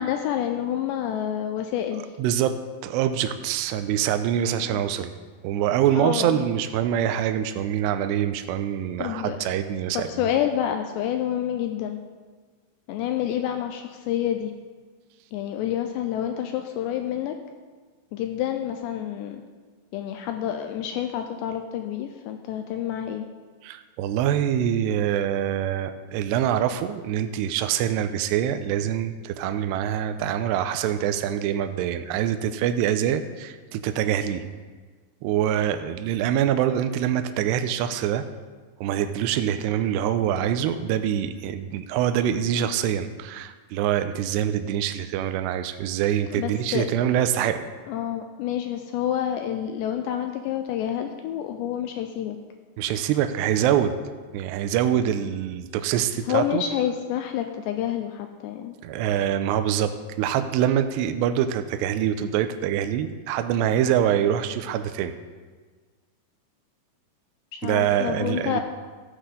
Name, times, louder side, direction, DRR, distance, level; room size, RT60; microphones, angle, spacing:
voice 1, 0.0-2.1 4.5-4.8 5.9-6.5 9.0-9.5 9.9-12.0 12.9-14.5 15.3-17.4 18.1-19.4 19.9-23.3 46.3-46.9 47.9-52.4 56.3-58.8 67.6-68.6, left 10 dB, 85° left, 5 dB, 2.5 m, -28 dB
voice 2, 2.2-2.6 2.8-5.1 5.4-10.1 23.6-34.4 35.2-38.2 38.8-47.7 52.8-53.9 54.3-56.6 58.8-65.1 67.6-68.6, right 10 dB, 90° right, 9 dB, 2.4 m, -25 dB
16.5 x 8.1 x 3.8 m, 1.4 s
omnidirectional pair, 5.5 m